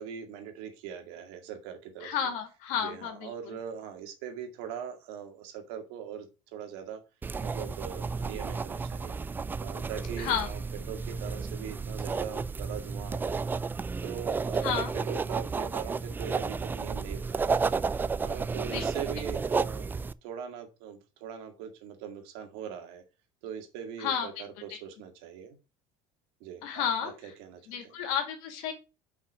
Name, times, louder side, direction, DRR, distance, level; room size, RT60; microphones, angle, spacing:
voice 1, 0.0-2.1 2.8-7.0 7.4-9.2 9.6-10.6 10.9-13.6 14.0-17.7 18.2-19.9 20.2-23.0 23.4-25.6 26.4-27.6, right 8 dB, 80° right, 5 dB, 2.2 m, -41 dB
voice 2, 2.0-3.6 10.2-10.5 14.6-14.9 18.7-18.9 24.0-24.3 24.7-24.8 26.6-27.3 27.7-28.7, left 8 dB, 75° left, 5 dB, 2.6 m, -32 dB
sound 1, 7.2-20.1, right 4 dB, 15° right, 0.3 m, -32 dB
5.8 x 5.8 x 6.2 m, 0.30 s
cardioid pair, 125°, 13 cm